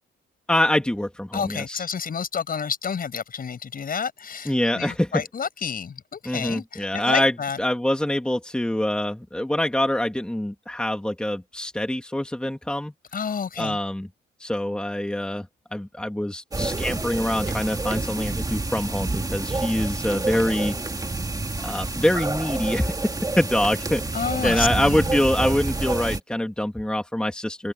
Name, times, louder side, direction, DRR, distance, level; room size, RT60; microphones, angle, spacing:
voice 1, 0.5-1.8 4.5-5.2 6.3-7.3 7.6-12.9 13.6-14.1 14.4-15.5 15.7-20.7 21.6-22.9 23.4-24.0 24.4-27.7, left 1 dB, 5° left, 2.2 m, -25 dB
voice 2, 1.3-7.6 13.1-13.8 24.1-25.2, left 6 dB, 45° left, 6.3 m, -30 dB
sound 1, 16.5-26.2, right 3 dB, 20° right, 2.2 m, -28 dB
open air
cardioid pair, 90°, 20 cm